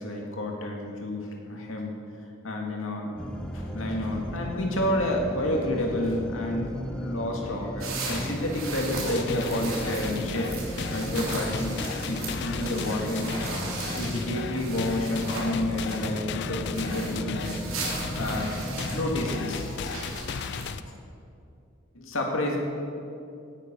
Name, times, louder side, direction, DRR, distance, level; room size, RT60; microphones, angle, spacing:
voice 1, 0.0-2.0 2.4-13.3 13.9-17.6 18.1-18.5 18.9-20.0 20.9-21.0 21.9-22.6, left 1 dB, 80° left, 1 dB, 2.3 m, -30 dB
sound 1, 3.2-19.4, equal, 5° left, 0.9 m, -36 dB
sound 2, 7.8-20.7, right 2 dB, 85° right, 3.5 m, -37 dB
sound 3, 9.1-20.8, left 6 dB, 55° left, 0.4 m, -36 dB
16.5 x 10.0 x 5.4 m, 2.5 s
head